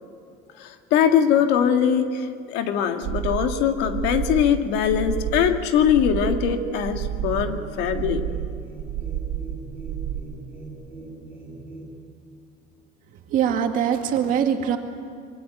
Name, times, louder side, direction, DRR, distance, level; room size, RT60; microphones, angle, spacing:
voice 1, 0.6-8.2, left 8 dB, 70° left, 6 dB, 2.0 m, -22 dB
sound 1, 3.0-10.2, right 11 dB, 75° right, 1.2 m, -30 dB
sound 2, 6.9-12.0, right 3 dB, 10° right, 6.4 m, -41 dB
voice 2, 13.3-14.8, right 8 dB, 50° right, 4 dB, 2.3 m, -22 dB
26.0 x 23.5 x 9.2 m, 2.2 s
cardioid pair, 170°, 18 cm